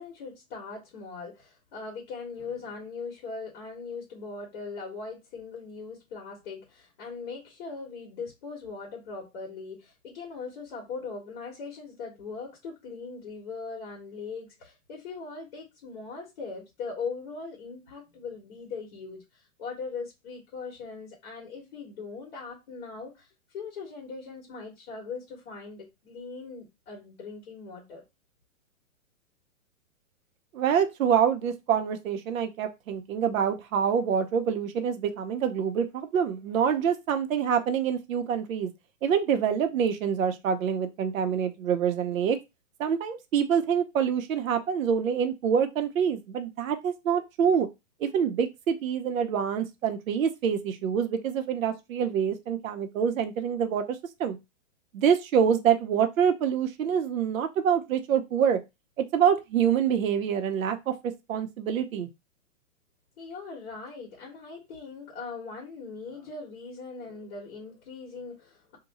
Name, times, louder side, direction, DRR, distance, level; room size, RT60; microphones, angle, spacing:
voice 1, 0.0-23.3 23.5-28.0 63.2-68.8, left 4 dB, 45° left, -1 dB, 1.3 m, -40 dB
voice 2, 30.5-38.7 39.0-42.4 42.8-47.7 48.0-54.4 54.9-58.6 59.0-60.9 61.3-62.1, right 7 dB, 70° right, 7 dB, 0.7 m, -26 dB
2.8 x 2.2 x 4.1 m, 0.23 s
hypercardioid pair, 165°, 42 cm